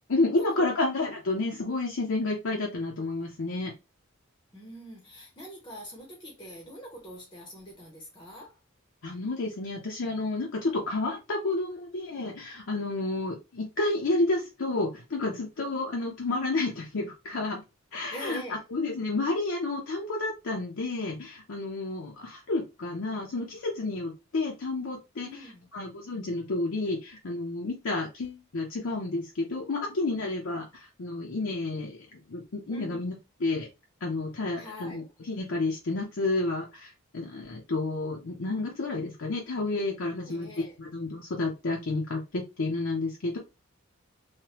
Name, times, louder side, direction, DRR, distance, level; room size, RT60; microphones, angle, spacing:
voice 1, 0.1-3.7 9.0-17.6 17.9-33.7 34.0-43.4, left 2 dB, 65° left, 0.6 m, -30 dB
voice 2, 4.5-8.6 18.1-18.6 25.2-25.7 32.7-33.0 34.6-35.1 40.2-40.7, equal, 20° left, 0.7 m, -44 dB
3.2 x 2.1 x 2.9 m
head